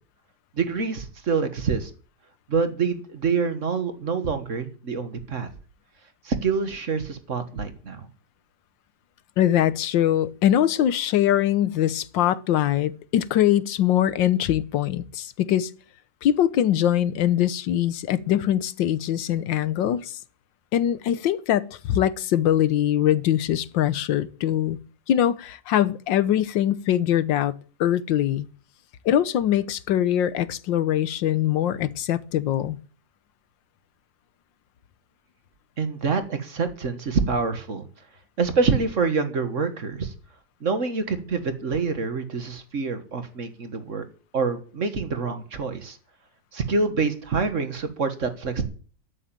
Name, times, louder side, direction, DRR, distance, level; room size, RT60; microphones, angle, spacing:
voice 1, 0.6-1.9 2.5-5.5 6.2-8.0 35.8-37.9 38.4-40.1 40.6-44.0 44.3-46.0 46.5-48.6, right 4 dB, 45° right, 1.7 m, -26 dB
voice 2, 9.4-15.7 16.2-20.2 20.7-24.8 25.1-27.5 27.8-28.5 29.0-32.8, left 11 dB, 85° left, 1.6 m, -22 dB
13.5 x 7.1 x 8.9 m
omnidirectional pair, 2.0 m